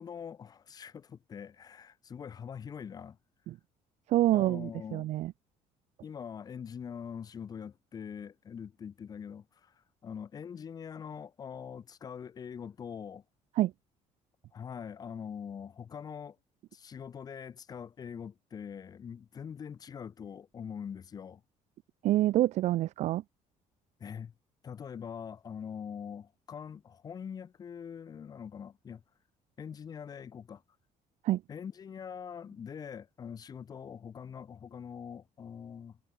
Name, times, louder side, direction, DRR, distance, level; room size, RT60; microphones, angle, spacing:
voice 1, 0.0-3.2 4.3-5.1 6.0-13.2 14.5-16.4 16.7-21.4 24.0-24.3 24.6-29.0 29.6-30.6 31.5-36.0, left 7 dB, 30° left, 1.8 m, -43 dB
voice 2, 4.1-5.3 13.6-13.7 22.0-23.2 31.2-31.4, right 15 dB, 60° right, 1.1 m, -27 dB
cardioid pair, 175°, 13 cm